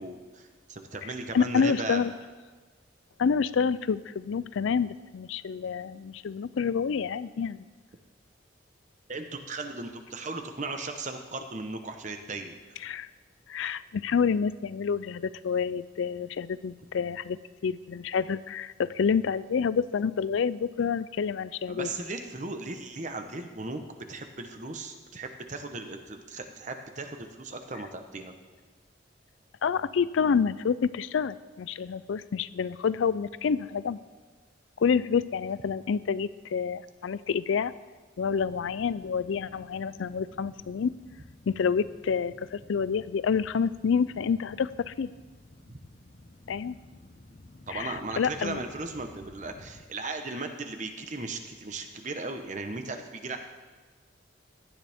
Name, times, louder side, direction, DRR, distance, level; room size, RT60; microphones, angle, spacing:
voice 1, 0.0-2.0 9.1-12.9 21.7-23.8 24.1-28.3 47.7-53.4, right 3 dB, 40° right, 6 dB, 1.0 m, -37 dB
voice 2, 1.0-2.1 3.2-7.6 12.8-13.1 13.5-21.9 29.6-34.0 34.8-37.7 38.2-40.9 41.5-45.1 46.5-46.8 47.7-48.6, left 6 dB, 75° left, 17 dB, 0.4 m, -28 dB
sound 1, 38.3-49.8, left 1 dB, 40° left, 0.8 m, -53 dB
16.5 x 12.0 x 3.6 m, 1.4 s
head